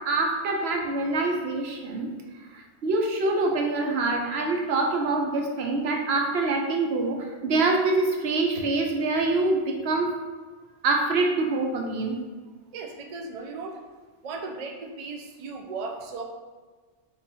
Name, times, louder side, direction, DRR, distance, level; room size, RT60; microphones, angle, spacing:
voice 1, 0.0-2.1 2.5-10.1 10.8-12.2, right 3 dB, 65° right, 1 dB, 0.8 m, -25 dB
voice 2, 12.7-13.8 14.2-16.2, right 3 dB, 85° right, 3 dB, 0.3 m, -36 dB
3.7 x 2.4 x 4.1 m, 1.4 s
omnidirectional pair, 1.2 m